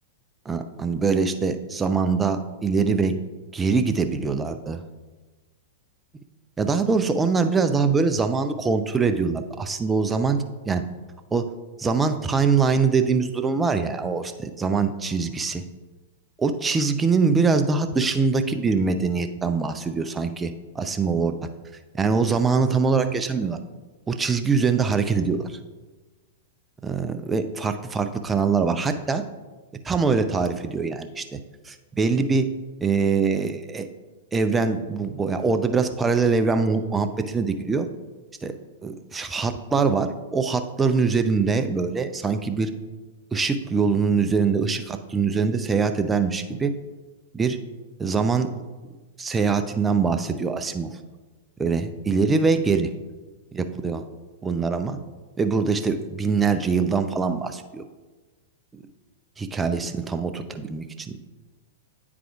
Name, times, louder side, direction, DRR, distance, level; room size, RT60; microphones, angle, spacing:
voice 1, 0.5-3.2 3.5-4.8 6.6-10.8 11.3-11.5 11.8-15.6 16.4-21.4 21.9-23.6 24.1-25.6 26.8-29.2 29.8-31.4 31.6-32.5 32.8-33.9 34.3-37.9 38.4-38.5 38.8-42.7 43.3-46.7 47.3-47.6 48.0-48.5 49.2-51.0 51.6-52.9 53.5-54.0 54.4-55.0 55.4-57.8 58.7-58.8 59.4-61.2, right 5 dB, 15° right, 8 dB, 0.4 m, -23 dB
9.0 x 4.8 x 2.4 m, 1.3 s
figure-of-eight pair, 100°, 0 cm